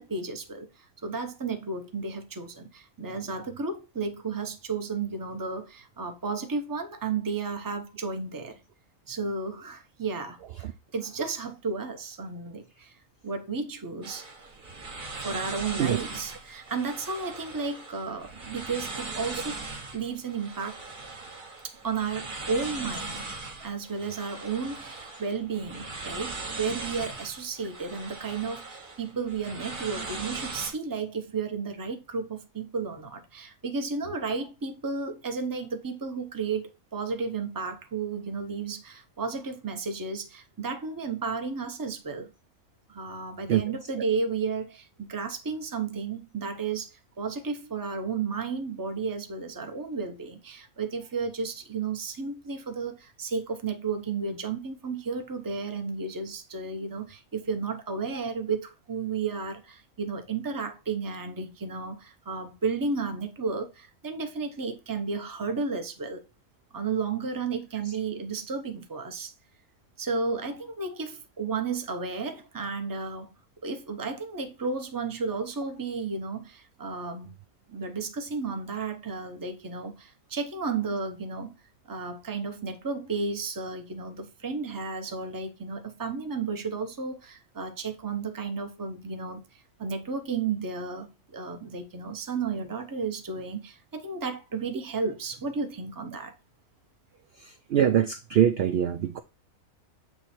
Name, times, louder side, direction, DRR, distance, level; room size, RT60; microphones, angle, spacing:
voice 1, 0.0-8.6 9.1-13.0 13.2-14.3 15.2-19.7 19.9-20.8 21.6-23.2 23.6-42.3 42.9-66.2 66.7-69.3 70.0-73.3 73.6-77.3 77.7-81.6 81.9-96.3, right 4 dB, 20° right, 0.7 m, -33 dB
sound 1, 14.0-30.7, right 3 dB, 35° right, 1.3 m, -39 dB
voice 2, 97.4-99.2, right 10 dB, 75° right, 0.5 m, -24 dB
8.1 x 3.2 x 4.3 m
omnidirectional pair, 1.5 m